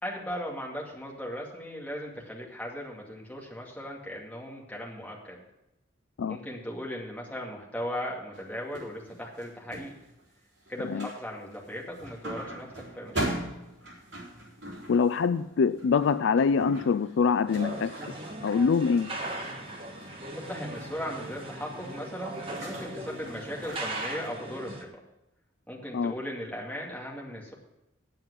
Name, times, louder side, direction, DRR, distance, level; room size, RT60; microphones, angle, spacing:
voice 1, 0.0-5.4 6.3-9.9 10.7-13.3 20.4-24.9 25.7-27.5, equal, 10° left, -3 dB, 2.2 m, -38 dB
sound 1, 8.3-10.3 10.6-11.2 11.5-24.3, right 1 dB, 60° right, 3.8 m, -41 dB
voice 2, 14.9-17.9 18.4-19.1 25.9-26.1, left 5 dB, 65° left, 14 dB, 0.4 m, -24 dB
sound 2, 17.5-24.8, right 1 dB, 30° right, 1.5 m, -38 dB
9.0 x 7.8 x 8.0 m, 0.90 s
head